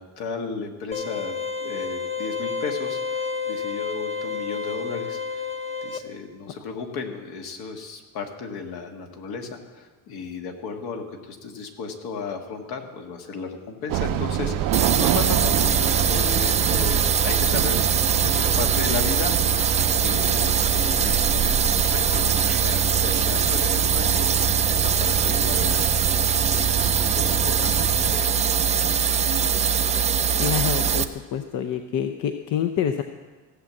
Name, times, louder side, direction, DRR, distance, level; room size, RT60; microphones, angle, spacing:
voice 1, 0.0-1.4 1.6-5.5 5.8-19.5 19.8-28.4, left 5 dB, 70° left, 4 dB, 1.9 m, -35 dB
sound 1, 0.9-6.0, left 5 dB, 15° left, 0.8 m, -30 dB
sound 2, 13.9-28.2, right 9 dB, 55° right, 0.7 m, -28 dB
sound 3, 14.7-31.0, right 7 dB, 20° right, 0.4 m, -22 dB
voice 2, 30.4-33.0, left 9 dB, 55° left, 6 dB, 0.8 m, -27 dB
16.0 x 7.3 x 7.6 m, 1.3 s
cardioid pair, 140°, 38 cm